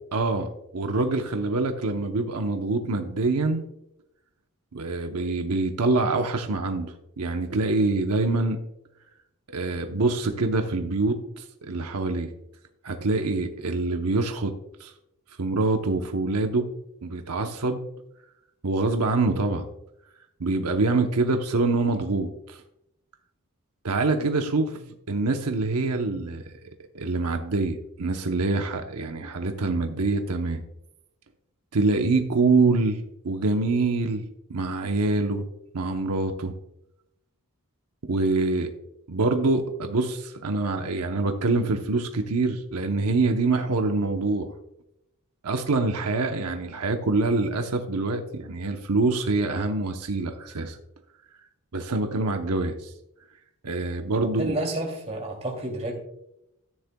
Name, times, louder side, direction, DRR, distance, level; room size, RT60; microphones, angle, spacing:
voice 1, 0.1-3.7 4.7-8.6 9.5-12.3 12.8-14.5 14.8-14.9 15.4-16.7 17.0-17.8 18.6-19.7 20.4-22.6 23.8-26.4 26.9-30.6 31.7-34.2 34.5-35.5 35.7-36.5 38.0-38.7 39.1-44.5 45.4-50.8 51.7-52.9 53.6-54.5, right 3 dB, 85° right, 5 dB, 0.9 m, -25 dB
voice 2, 54.2-55.9, right 1 dB, 30° right, 1 dB, 2.7 m, -30 dB
14.0 x 9.7 x 2.3 m, 0.84 s
head